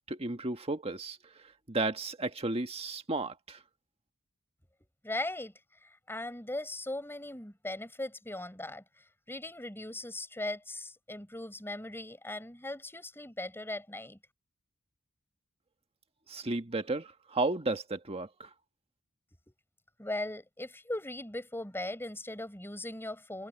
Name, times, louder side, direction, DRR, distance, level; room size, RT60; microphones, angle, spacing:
voice 1, 0.1-1.2 1.7-3.6 16.3-18.5, right 2 dB, 30° right, 1.6 m, -33 dB
voice 2, 5.0-5.5 5.8-8.8 9.3-14.2 20.0-23.5, left 1 dB, 10° left, 6.6 m, -39 dB
head